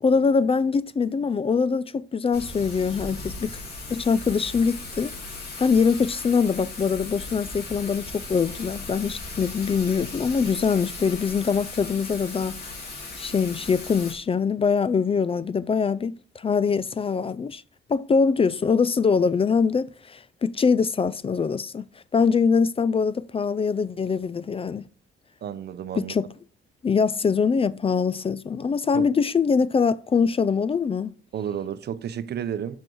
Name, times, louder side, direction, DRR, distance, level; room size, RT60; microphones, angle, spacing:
voice 1, 0.0-3.6 3.9-5.1 5.6-12.5 13.2-17.6 17.9-21.9 22.1-24.8 25.9-26.3 26.8-31.1, left 5 dB, 30° left, 0.4 m, -23 dB
Thunder / Rain, 2.3-14.1, left 3 dB, 50° left, 3.8 m, -37 dB
voice 2, 25.4-26.1 28.9-29.1 31.3-32.8, right 9 dB, 55° right, 0.7 m, -31 dB
7.6 x 6.0 x 4.6 m
cardioid pair, 90°, 20 cm